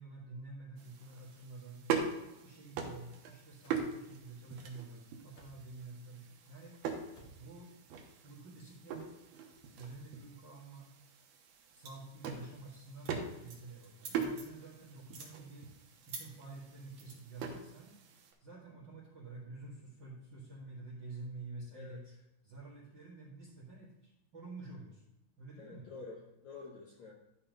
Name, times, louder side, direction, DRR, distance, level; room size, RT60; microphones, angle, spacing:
voice 1, 0.0-1.8 2.4-6.8 7.4-7.7 8.2-9.1 9.7-10.9 11.7-15.7 16.1-17.9 18.4-22.0 22.4-25.0 25.4-25.9, right 3 dB, 40° right, -6 dB, 1.9 m, -49 dB
sound 1, 0.8-18.3, right 6 dB, 75° right, 2.9 m, -42 dB
sound 2, 2.0-2.2 3.6-3.8 5.3-5.6 7.1-7.4, equal, 45° left, 2.0 m, -58 dB
sound 3, 11.9-12.2 12.6-12.8 13.1-14.6 15.0-15.3 16.0-16.3 17.0-17.1, right 5 dB, 55° right, 2.9 m, -47 dB
voice 2, 21.7-22.2 25.6-27.1, left 4 dB, 70° left, -2 dB, 1.7 m, -49 dB
12.5 x 4.3 x 5.3 m, 0.93 s
omnidirectional pair, 4.5 m